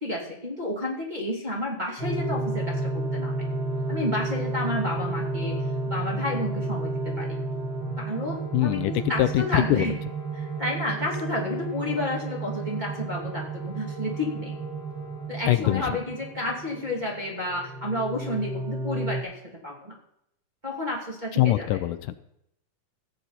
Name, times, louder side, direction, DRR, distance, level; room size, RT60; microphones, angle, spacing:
voice 1, 0.0-3.3 3.9-5.6 5.9-7.4 8.0-10.1 10.4-14.5 15.3-19.9 20.6-21.7, left 1 dB, 15° right, -4 dB, 2.5 m, -31 dB
sound 1, 2.0-19.2, right 2 dB, 10° left, 2.8 m, -32 dB
voice 2, 8.5-10.0 15.5-15.9 21.3-22.2, left 14 dB, 80° left, 12 dB, 2.2 m, -23 dB
15.0 x 9.5 x 4.3 m, 0.76 s
omnidirectional pair, 3.7 m